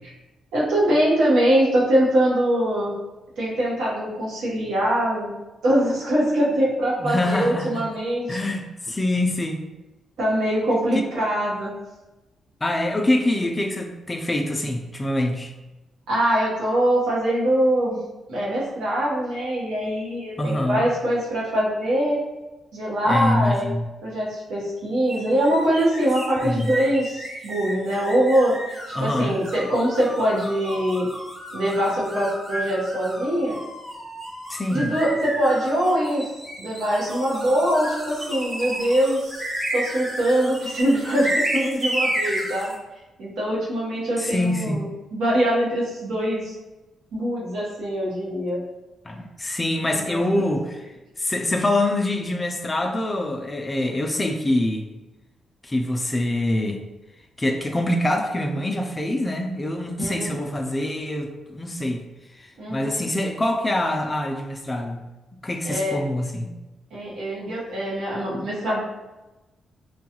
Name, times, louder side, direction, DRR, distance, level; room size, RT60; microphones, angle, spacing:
voice 1, 0.5-2.9 3.4-5.3 5.6-8.4 10.2-11.7 16.1-18.0 18.3-22.2 22.7-23.7 24.0-31.1 31.5-33.6 34.7-36.3 36.6-39.4 39.7-42.7 43.2-46.6 47.1-48.6 49.9-50.2 60.0-60.4 62.6-63.1 65.6-66.0 66.9-68.8, right 1 dB, 90° right, -5 dB, 1.0 m, -23 dB
voice 2, 7.0-7.9 8.3-9.6 12.6-15.5 20.4-20.8 23.1-23.8 26.4-26.7 29.0-29.4 34.5-34.9 44.2-44.8 49.0-50.8 51.2-54.9 55.6-56.8 57.4-62.0 62.3-65.0 65.4-66.5, left 1 dB, 20° left, 4 dB, 0.3 m, -25 dB
sound 1, 25.1-42.8, right 1 dB, 15° right, 0.8 m, -32 dB
3.0 x 2.3 x 2.9 m, 1.1 s
cardioid pair, 100°, 0 cm